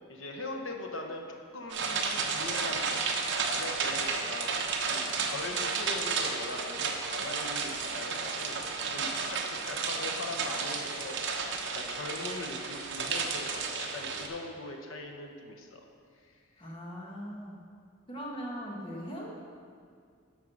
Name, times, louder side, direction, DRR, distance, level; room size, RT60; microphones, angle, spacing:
voice 1, 0.1-3.0 3.4-4.5 4.8-11.3 11.6-15.8, left 2 dB, 80° left, 2 dB, 1.1 m, -41 dB
sound 1, 1.7-14.3, right 4 dB, 60° right, 1.0 m, -32 dB
voice 2, 16.6-17.6 18.1-19.4, equal, 25° left, -3 dB, 1.5 m, -40 dB
11.0 x 6.5 x 5.5 m, 2.2 s
head